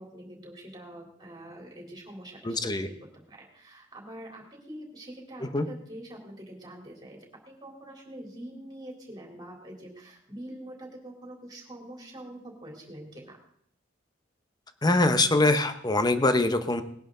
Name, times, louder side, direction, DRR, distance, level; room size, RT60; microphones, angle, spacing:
voice 1, 0.0-3.0 3.3-7.2 7.5-13.4, right 1 dB, 20° right, 0 dB, 3.5 m, -45 dB
voice 2, 2.4-2.9 5.5-5.7 14.8-16.8, left 2 dB, 20° left, 10 dB, 0.9 m, -23 dB
20.0 x 11.0 x 3.9 m, 0.68 s
head